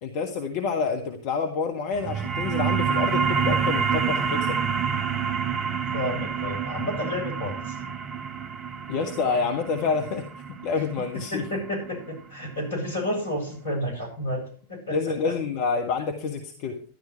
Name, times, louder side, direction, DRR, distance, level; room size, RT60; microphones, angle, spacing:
voice 1, 0.0-4.6 8.9-11.4 14.9-16.8, left 5 dB, 45° left, 5 dB, 1.5 m, -28 dB
sound 1, 1.9-13.0, right 6 dB, 25° right, 1.2 m, -28 dB
voice 2, 5.9-7.9 11.3-14.4 14.7-15.3, left 1 dB, 70° left, 2 dB, 7.3 m, -31 dB
13.5 x 11.5 x 4.5 m, 0.44 s
figure-of-eight pair, 90°, 0 cm